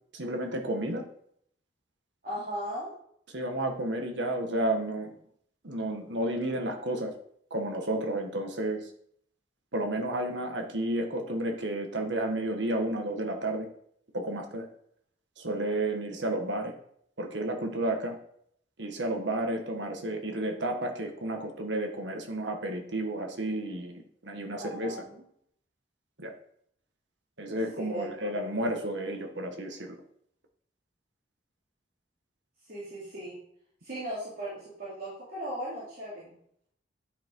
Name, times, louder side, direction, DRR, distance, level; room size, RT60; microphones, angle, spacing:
voice 1, 0.1-1.1 3.3-5.1 5.6-7.1 7.5-8.9 9.7-13.7 14.1-14.7 15.4-16.7 17.2-18.2 18.8-25.0 26.2-26.3 27.4-30.0, right 1 dB, 90° right, 4 dB, 1.6 m, -31 dB
voice 2, 2.2-2.9 19.8-20.0 24.5-25.2 27.8-28.4 32.7-33.4 33.8-36.4, right 1 dB, 55° right, -7 dB, 3.1 m, -38 dB
10.5 x 5.9 x 4.6 m, 0.67 s
head